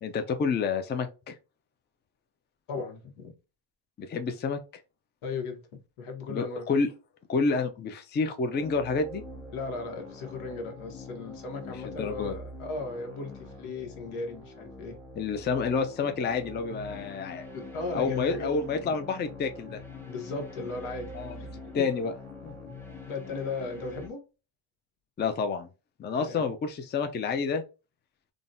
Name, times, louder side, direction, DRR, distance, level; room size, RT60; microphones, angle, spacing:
voice 1, 0.0-1.3 4.0-4.6 6.3-6.9 7.3-9.2 11.6-12.4 15.2-17.5 17.9-19.8 21.1-22.1 22.4-22.5 25.2-25.7 26.0-27.6, left 4 dB, 25° left, 0.4 m, -29 dB
voice 2, 2.7-3.3 5.2-5.6 6.0-6.6 9.5-15.0 17.5-18.5 20.1-21.1 21.4-21.8 23.1-24.2 26.1-26.4, left 3 dB, 85° left, 1.0 m, -36 dB
sound 1, 8.5-24.1, left 2 dB, 5° left, 0.8 m, -44 dB
3.8 x 2.1 x 2.6 m
cardioid pair, 90°, 48 cm